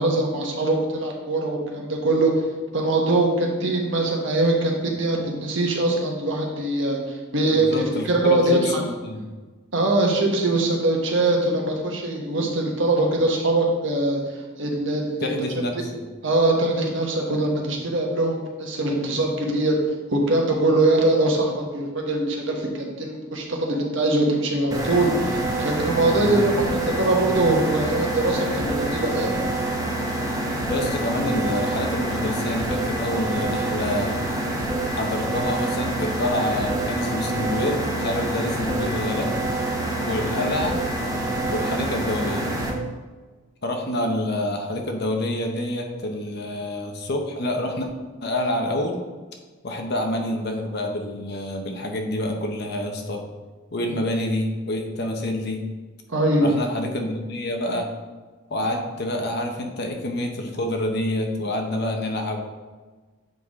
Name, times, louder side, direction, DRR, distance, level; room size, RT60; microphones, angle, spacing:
voice 1, 0.0-2.3 2.7-8.8 9.7-15.3 16.2-19.8 20.1-26.5 26.9-29.4 56.1-56.5, right 2 dB, 60° right, 0 dB, 1.2 m, -22 dB
voice 2, 7.5-9.3 15.2-16.0 26.0-26.5 30.7-34.3 34.9-39.3 40.0-40.8 41.5-42.6 43.6-47.9 48.2-49.0 49.6-53.2 53.7-55.6 56.4-57.9 58.5-62.4, left 1 dB, 50° left, 3 dB, 0.8 m, -27 dB
sound 1, 24.7-42.7, right 1 dB, 15° right, 0.8 m, -26 dB
7.8 x 4.7 x 3.6 m, 1.3 s
head